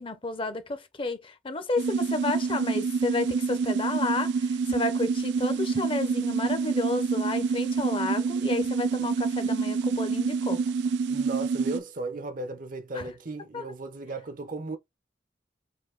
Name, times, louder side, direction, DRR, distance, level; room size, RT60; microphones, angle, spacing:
voice 1, 0.0-10.6 12.9-13.1 13.5-13.6, left 3 dB, 30° left, 0.7 m, -31 dB
sound 1, 1.8-11.8, right 5 dB, 65° right, 0.3 m, -27 dB
voice 2, 11.1-14.8, right 2 dB, 50° right, 0.7 m, -36 dB
4.4 x 2.8 x 3.8 m
head